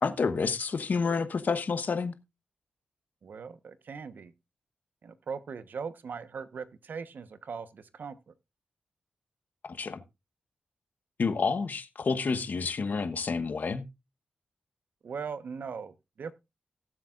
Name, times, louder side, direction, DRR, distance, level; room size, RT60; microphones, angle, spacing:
voice 1, 0.0-2.1 9.6-10.0 11.2-13.9, left 5 dB, 60° left, 1.1 m, -29 dB
voice 2, 3.2-4.3 5.0-8.3 15.0-16.3, right 5 dB, 70° right, 1.1 m, -40 dB
18.5 x 7.6 x 2.5 m
supercardioid pair, 45°, 3 cm